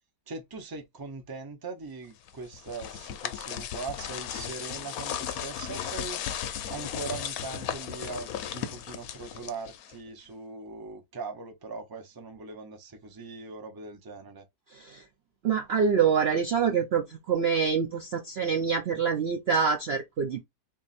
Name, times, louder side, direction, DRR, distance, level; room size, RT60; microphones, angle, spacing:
voice 1, 0.3-6.2 6.7-14.4, right 4 dB, 25° right, 0.4 m, -40 dB
sound 1, 2.3-10.1, left 9 dB, 70° left, 0.9 m, -36 dB
voice 2, 14.7-15.0 15.4-20.4, right 6 dB, 80° right, 0.5 m, -26 dB
3.5 x 2.8 x 4.1 m
omnidirectional pair, 1.9 m